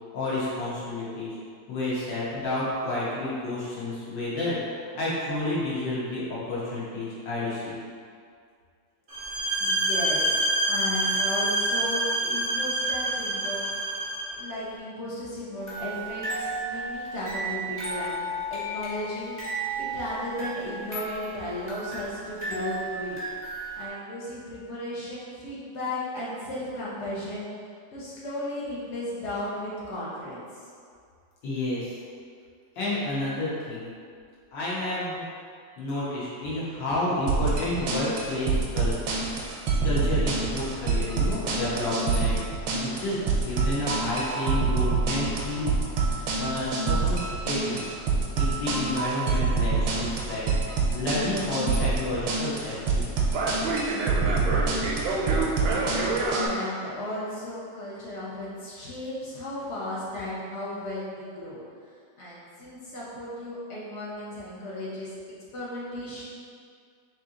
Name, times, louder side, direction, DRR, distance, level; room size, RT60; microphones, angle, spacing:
voice 1, 0.1-1.4 1.7-4.6 4.9-7.8 31.4-32.0 32.7-33.9 34.5-35.2 35.8-38.9 39.8-42.4 42.7-43.2 43.5-45.7 46.1-47.9 48.3-50.5 50.9-53.1, left 2 dB, 75° left, -8 dB, 1.7 m, -30 dB
sound 1, 9.1-14.4, right 1 dB, 60° right, 0.8 m, -27 dB
voice 2, 9.6-13.7 14.3-19.4 19.8-23.2 23.8-27.4 27.9-30.7 55.4-61.6 62.2-65.2 65.5-66.3, left 1 dB, 55° left, -7 dB, 0.8 m, -35 dB
sound 2, 15.6-23.9, right 2 dB, 10° left, 0.9 m, -34 dB
sound 3, 37.3-56.5, right 3 dB, 85° right, 1.3 m, -26 dB
3.7 x 2.9 x 3.7 m, 2.2 s
omnidirectional pair, 2.0 m